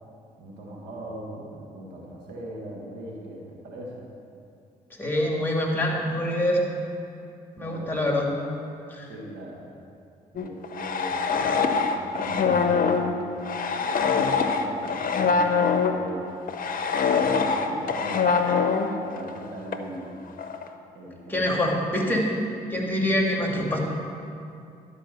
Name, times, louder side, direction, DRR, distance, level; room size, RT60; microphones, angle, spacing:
voice 1, 0.4-4.1 7.6-8.0 9.1-9.7 10.3-13.2 13.8-16.3 17.1-18.5 18.8-20.1 20.9-21.7, right 1 dB, 80° right, -2 dB, 1.7 m, -40 dB
voice 2, 5.0-6.7 7.6-8.3 8.9-9.1 21.3-22.3 22.7-23.8, left 1 dB, 10° left, -1 dB, 2.5 m, -25 dB
sound 1, 10.4-16.0 16.5-19.4 19.7-19.8 20.4-20.7, left 5 dB, 50° left, 0.8 m, -24 dB
sound 2, 12.3-16.1, right 1 dB, 55° right, 1.7 m, -42 dB
11.5 x 5.3 x 6.8 m, 2.6 s
hypercardioid pair, 50°, 18 cm